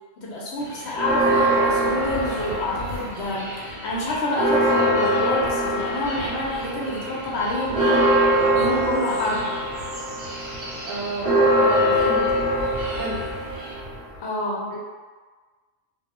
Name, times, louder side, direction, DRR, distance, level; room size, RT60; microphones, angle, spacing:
voice 1, 0.2-8.1 8.5-9.5 14.2-14.8, left 1 dB, 70° left, -4 dB, 0.8 m, -28 dB
sound 1, 0.6-13.7, equal, 25° left, 0.7 m, -40 dB
sound 2, 0.9-3.3 3.7-14.2, right 1 dB, 50° right, 0.6 m, -23 dB
voice 2, 10.9-12.4 12.9-13.3, right 2 dB, 85° right, -3 dB, 0.9 m, -31 dB
2.2 x 2.0 x 2.8 m, 1.4 s
omnidirectional pair, 1.3 m